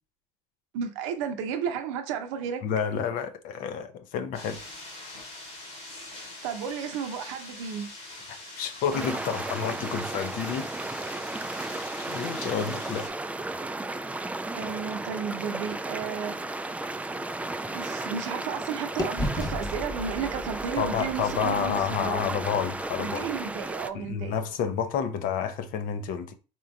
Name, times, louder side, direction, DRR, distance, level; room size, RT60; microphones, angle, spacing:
voice 1, 0.7-2.6 6.4-7.9 14.5-16.4 17.7-22.3 23.0-24.4, right 7 dB, 80° right, 0.6 m, -33 dB
voice 2, 2.6-4.6 8.3-10.7 12.1-13.1 20.8-23.3 23.9-26.3, left 7 dB, 65° left, 0.6 m, -30 dB
sound 1, 4.3-13.1, left 2 dB, 85° left, 1.9 m, -43 dB
sound 2, 8.9-23.9, right 2 dB, 10° right, 0.3 m, -34 dB
sound 3, 16.3-18.6 19.0-23.0, left 1 dB, 25° left, 1.0 m, -37 dB
4.4 x 3.7 x 2.3 m
hypercardioid pair, 65°, 15 cm